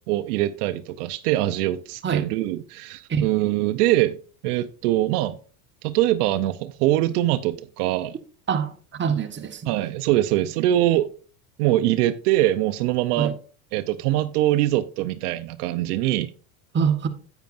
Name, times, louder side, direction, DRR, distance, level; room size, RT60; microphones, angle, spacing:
voice 1, 0.1-4.2 4.4-5.4 5.8-8.2 9.6-11.1 11.6-13.3 13.7-16.3, right 14 dB, 75° right, 0.7 m, -23 dB
voice 2, 8.5-9.7 13.2-13.3 16.7-17.1, right 7 dB, 25° right, 1.1 m, -24 dB
10.5 x 8.3 x 2.5 m
supercardioid pair, 95°, 46 cm